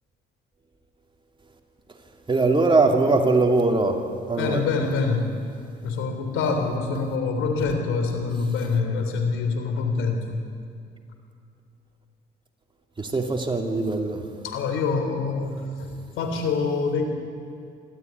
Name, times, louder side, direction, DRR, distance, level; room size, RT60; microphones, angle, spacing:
voice 1, 2.3-4.0 4.3-4.7 13.0-14.2, right 3 dB, 25° right, 3 dB, 2.7 m, -21 dB
voice 2, 4.4-5.3 5.8-10.4 14.4-17.1, left 4 dB, 90° left, 5 dB, 3.3 m, -25 dB
25.5 x 13.5 x 9.5 m, 2.4 s
cardioid pair, 90°, 20 cm